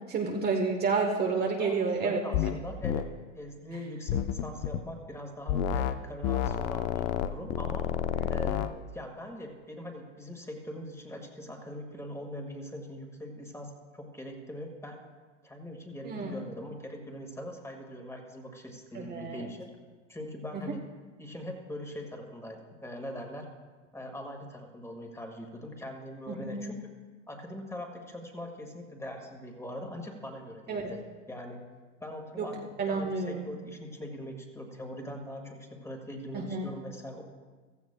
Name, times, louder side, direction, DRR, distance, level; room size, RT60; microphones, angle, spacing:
voice 1, 0.1-2.2 8.1-8.3 16.0-16.3 18.9-19.5 26.3-26.6 30.7-30.8 32.4-32.5 32.8-33.4 36.3-36.7, right 4 dB, 25° right, 0 dB, 1.1 m, -30 dB
voice 2, 2.0-3.1 3.4-7.9 8.3-15.0 15.4-19.7 20.1-20.8 21.2-23.5 23.9-26.9 27.3-31.0 31.3-31.6 32.0-32.6 32.9-37.2, equal, 5° left, 3 dB, 1.7 m, -42 dB
sound 1, 2.3-2.6 2.8-3.0 4.1-4.8 5.5-5.9 6.2-8.7, left 10 dB, 50° left, 0.7 m, -29 dB
15.5 x 14.5 x 2.2 m, 1.4 s
hypercardioid pair, 100°, 39 cm